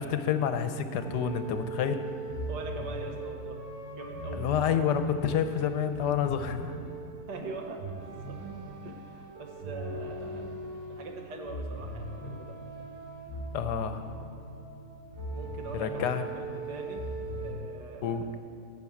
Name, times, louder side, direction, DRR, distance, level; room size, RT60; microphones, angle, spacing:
voice 1, 0.0-2.0 4.3-6.6 13.5-14.0 15.8-16.2 18.0-18.2, left 8 dB, 75° left, 9 dB, 1.3 m, -28 dB
sound 1, 1.0-17.5, right 1 dB, 10° right, 1.9 m, -39 dB
voice 2, 2.5-3.6 3.9-4.5 7.3-8.4 8.8-10.5 10.9-12.5 15.3-17.0 17.4-18.4, right 3 dB, 75° right, 3 dB, 1.7 m, -42 dB
10.5 x 6.7 x 8.4 m, 2.3 s
omnidirectional pair, 1.8 m